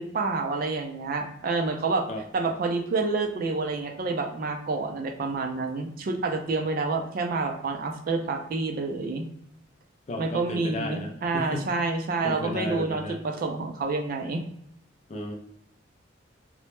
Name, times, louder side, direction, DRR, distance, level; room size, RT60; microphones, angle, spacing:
voice 1, 0.0-2.1 2.3-9.3 10.2-14.4, right 3 dB, 50° right, 5 dB, 0.3 m, -28 dB
voice 2, 10.1-11.7 12.2-13.2 15.1-15.4, left 1 dB, 35° left, 3 dB, 0.3 m, -33 dB
2.1 x 2.0 x 2.9 m, 0.76 s
head